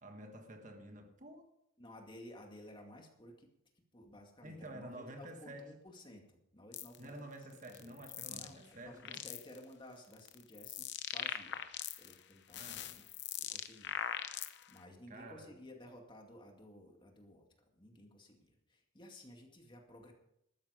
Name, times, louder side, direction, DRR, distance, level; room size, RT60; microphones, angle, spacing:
voice 1, 0.0-1.5 4.4-5.7 7.0-9.2 12.5-12.9 15.1-15.6, right 1 dB, 35° right, 1.5 m, -50 dB
voice 2, 1.8-3.5 3.9-7.2 7.7-8.0 8.3-11.6 12.0-14.1 14.7-17.5 17.7-20.1, left 1 dB, 20° left, 2.2 m, -55 dB
sound 1, 6.7-7.0 7.6-8.5 8.9-9.6 10.1-12.2 12.5-14.8, left 9 dB, 55° left, 0.8 m, -41 dB
14.5 x 12.5 x 5.1 m
head